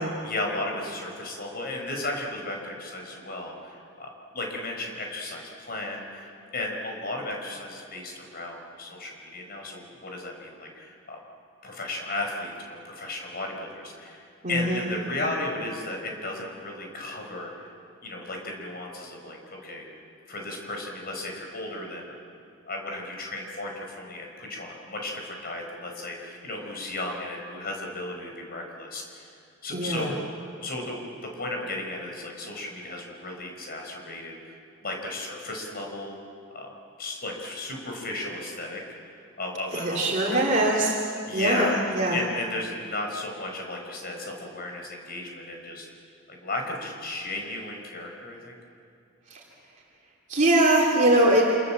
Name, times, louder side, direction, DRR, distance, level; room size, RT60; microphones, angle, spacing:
voice 1, 0.0-11.2 11.6-17.7 18.0-19.8 20.3-22.1 22.7-29.3 29.6-30.2 30.6-34.6 34.8-36.2 36.5-36.7 37.0-38.8 39.1-40.7 41.3-45.9 46.3-48.6, left 2 dB, 45° left, 1 dB, 5.6 m, -34 dB
voice 2, 14.4-14.9 29.7-30.1 39.7-41.0 41.3-42.2 49.3-49.4 50.3-51.4, right 1 dB, 40° right, -3 dB, 3.0 m, -22 dB
28.5 x 27.5 x 7.6 m, 2.4 s
head